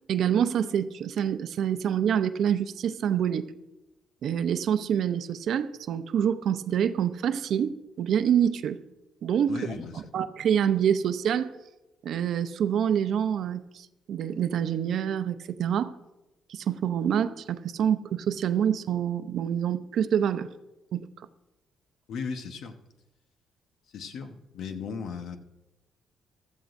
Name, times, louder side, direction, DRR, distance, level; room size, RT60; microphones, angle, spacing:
voice 1, 0.1-3.5 4.2-8.8 9.2-9.7 10.1-11.5 12.0-15.9 16.5-20.5 20.9-21.1, right 8 dB, 70° right, 11 dB, 0.6 m, -26 dB
voice 2, 9.5-10.1 22.1-22.8 23.9-25.4, left 5 dB, 75° left, 7 dB, 1.0 m, -36 dB
15.5 x 13.0 x 2.6 m, 1.0 s
cardioid pair, 90°, 0 cm